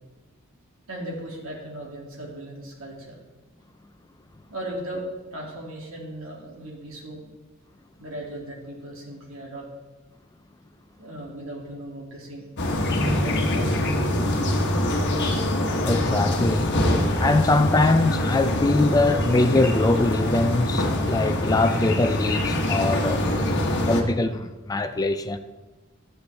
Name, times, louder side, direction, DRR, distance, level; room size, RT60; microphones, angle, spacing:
voice 1, 0.9-3.2 4.5-5.0 5.3-7.3 8.0-9.7 11.0-12.5 13.0-13.8, right 1 dB, 70° right, 2.6 m, -37 dB
sound 1, 12.6-24.0, left 1 dB, 55° left, 1.2 m, -24 dB
voice 2, 15.8-16.7 17.2-23.3 23.7-25.4, left 2 dB, 15° left, 0.4 m, -22 dB
13.0 x 7.8 x 3.4 m
head